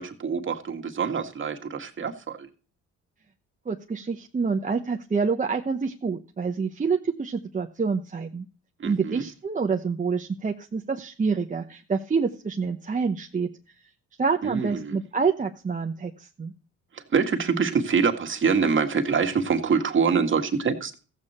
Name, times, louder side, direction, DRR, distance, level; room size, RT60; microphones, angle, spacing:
voice 1, 0.0-2.5 8.8-9.2 14.4-14.9 16.9-21.0, right 5 dB, 40° right, 1.8 m, -25 dB
voice 2, 3.6-8.5 8.8-13.5 14.2-16.5, right 5 dB, 25° right, 0.9 m, -27 dB
15.0 x 8.1 x 4.3 m
cardioid pair, 90°, 30 cm